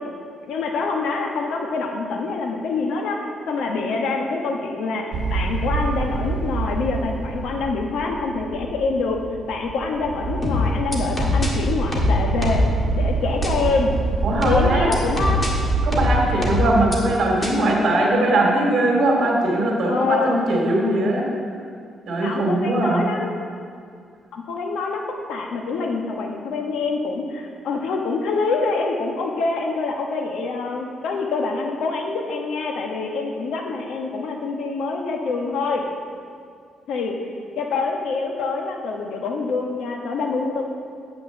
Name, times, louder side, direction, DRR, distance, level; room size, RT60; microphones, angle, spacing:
voice 1, 0.4-9.2 9.5-12.6 12.9-14.0 14.4-15.4 19.8-20.4 22.2-23.3 24.3-25.0 25.3-35.8 36.9-40.6, left 4 dB, 75° left, 1 dB, 1.2 m, -25 dB
sound 1, 5.1-16.9, right 3 dB, 85° right, 0.9 m, -26 dB
sound 2, 10.4-11.5 11.9-12.7 13.4-13.5 14.4-15.5 15.9-17.0 17.4-17.5, left 3 dB, 20° left, 1.6 m, -22 dB
voice 2, 14.2-14.9 15.8-21.3 22.1-23.1, right 1 dB, 55° right, -2 dB, 2.5 m, -20 dB
8.6 x 6.1 x 7.0 m, 2.2 s
cardioid pair, 140°, 0 cm